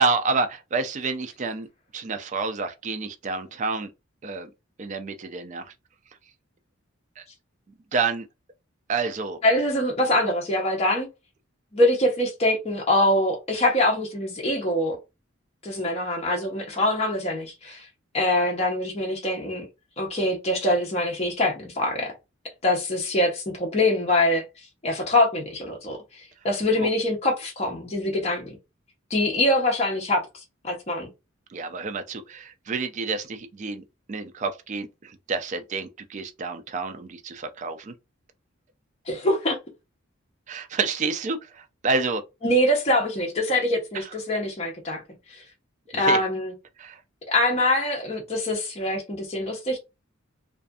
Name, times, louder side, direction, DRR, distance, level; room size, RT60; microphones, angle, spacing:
voice 1, 0.0-1.7 1.9-3.9 4.2-4.5 4.8-5.7 7.2-7.3 7.9-8.3 8.9-9.4 26.8-26.9 31.5-37.9 40.5-42.2 43.9-44.1 45.9-46.2 46.8-47.0, right 4 dB, 35° right, 0.3 m, -29 dB
voice 2, 9.4-11.1 11.7-15.0 15.6-17.9 18.1-19.6 20.0-22.2 22.6-24.4 24.8-28.5 29.1-31.1 39.1-39.6 42.4-45.0 45.3-45.4 45.9-46.5 47.3-49.8, left 1 dB, 30° left, 0.7 m, -24 dB
2.5 x 2.4 x 2.3 m
head